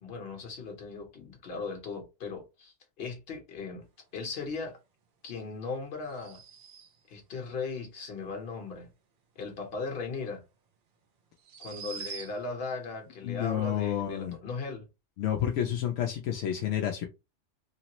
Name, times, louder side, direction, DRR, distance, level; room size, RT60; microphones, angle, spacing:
voice 1, 0.0-3.8 4.1-4.8 5.2-6.4 7.1-8.9 9.4-10.4 11.6-14.9, left 4 dB, 55° left, 1.1 m, -38 dB
sound 1, 6.0-7.1 10.2-10.3 11.4-12.6, right 6 dB, 55° right, 0.7 m, -44 dB
voice 2, 13.2-14.4 15.2-17.1, left 10 dB, 80° left, 0.9 m, -30 dB
3.1 x 2.0 x 2.9 m
omnidirectional pair, 1.2 m